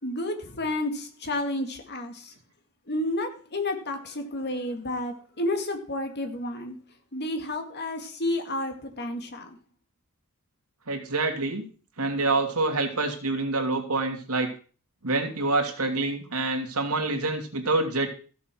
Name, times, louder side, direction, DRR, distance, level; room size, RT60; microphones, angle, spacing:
voice 1, 0.0-2.3 2.9-6.8 7.1-9.6, left 1 dB, 50° left, 5 dB, 2.3 m, -31 dB
voice 2, 10.9-11.6 12.0-14.5 15.0-18.1, right 2 dB, 75° right, 4 dB, 2.7 m, -26 dB
15.0 x 7.3 x 6.1 m, 0.40 s
head